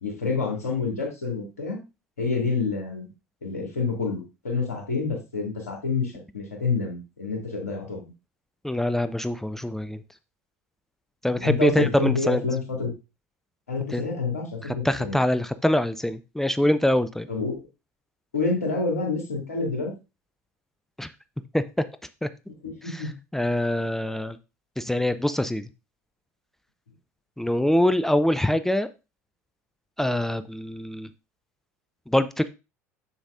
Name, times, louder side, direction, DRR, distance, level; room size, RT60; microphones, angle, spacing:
voice 1, 0.0-1.8 2.2-3.1 3.4-8.1 11.4-12.9 13.7-15.2 17.3-17.7 18.3-19.9 22.6-23.2, left 4 dB, 80° left, 0 dB, 2.5 m, -28 dB
voice 2, 8.6-10.0 11.2-12.4 13.9-14.0 14.6-17.3 21.0-21.1 21.5-21.6 22.2-22.3 22.9-23.0 23.3-24.4 24.8-25.7 27.4-28.9 30.0-31.1 32.1-32.5, left 1 dB, 5° left, 12 dB, 0.5 m, -24 dB
7.0 x 7.0 x 2.6 m, 0.27 s
figure-of-eight pair, 70°, 8 cm